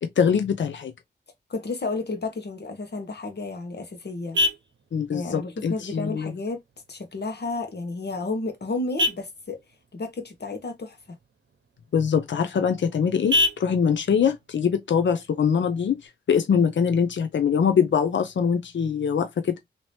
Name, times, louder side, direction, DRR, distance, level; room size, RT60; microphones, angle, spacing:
voice 1, 0.0-0.9 4.9-6.3 11.9-15.9 16.3-19.6, left 7 dB, 85° left, 0.5 m, -23 dB
voice 2, 1.5-4.4 5.1-6.6 6.9-9.6 9.9-11.0, left 3 dB, 60° left, 1.1 m, -32 dB
Vehicle horn car horn honking, 3.1-16.1, left 2 dB, 85° right, 0.8 m, -33 dB
2.9 x 2.8 x 3.1 m
wide cardioid pair, 100°, 19 cm